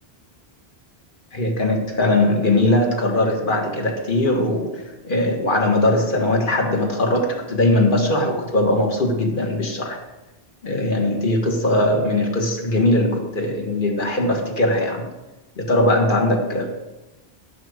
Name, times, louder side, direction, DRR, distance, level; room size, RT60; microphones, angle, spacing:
voice 1, 1.3-10.0 10.6-15.1 15.6-16.7, left 1 dB, 55° left, 2 dB, 1.8 m, -20 dB
11.5 x 6.0 x 6.5 m, 1.1 s
omnidirectional pair, 1.0 m